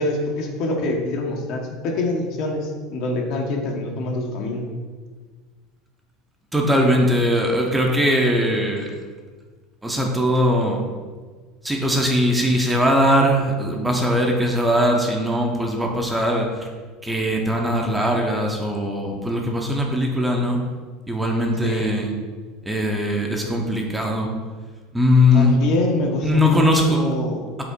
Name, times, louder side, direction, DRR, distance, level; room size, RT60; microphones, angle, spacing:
voice 1, 0.0-4.7 21.6-22.1 25.3-27.4, left 2 dB, 55° left, 1 dB, 1.0 m, -25 dB
voice 2, 6.5-8.9 9.8-10.8 11.6-16.5 17.0-20.6 21.1-22.1 22.7-24.3 24.9-25.6 26.2-27.0, equal, 5° right, 0 dB, 0.7 m, -20 dB
5.0 x 3.6 x 5.1 m, 1.5 s
supercardioid pair, 140°, 0 cm